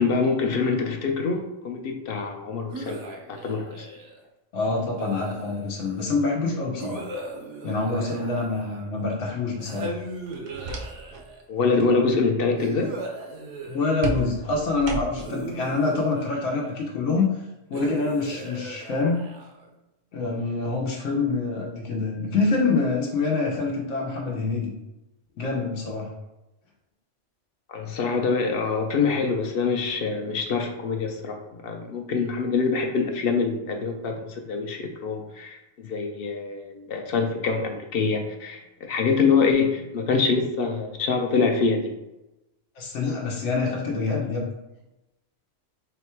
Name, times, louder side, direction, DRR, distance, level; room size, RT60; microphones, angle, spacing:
voice 1, 0.0-3.9 11.5-12.9 27.7-41.9, left 4 dB, 60° left, 3 dB, 0.7 m, -25 dB
sound 1, 2.7-4.2 4.9-5.9 6.8-9.0 9.6-11.4 12.6-14.3 15.1-16.8 17.7-19.7, right 2 dB, 75° right, 1.0 m, -38 dB
voice 2, 4.5-7.0 7.6-9.9 13.6-17.3 17.7-19.3 20.1-24.7 25.4-26.1 42.8-44.5, left 3 dB, 90° left, -2 dB, 1.1 m, -26 dB
sound 2, 10.3-11.3 11.6-11.9 14.0-15.4, right 2 dB, 55° right, 0.6 m, -33 dB
4.0 x 2.2 x 4.3 m, 0.96 s
omnidirectional pair, 1.2 m